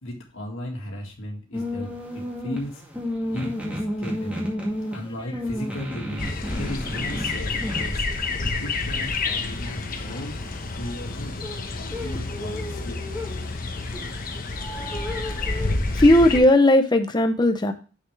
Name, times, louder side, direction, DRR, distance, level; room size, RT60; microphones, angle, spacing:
voice 1, 0.0-2.8 3.3-4.5 4.9-8.1 8.6-10.4 10.8-11.5 11.7-13.2, equal, 75° left, -1 dB, 1.9 m, -36 dB
sound 1, 1.5-16.4, left 1 dB, 5° right, 2.1 m, -34 dB
sound 2, 6.2-16.4, left 3 dB, 45° left, 1.0 m, -29 dB
voice 2, 14.6-17.7, left 1 dB, 20° left, 7 dB, 0.7 m, -19 dB
6.7 x 6.5 x 3.3 m, 0.35 s
head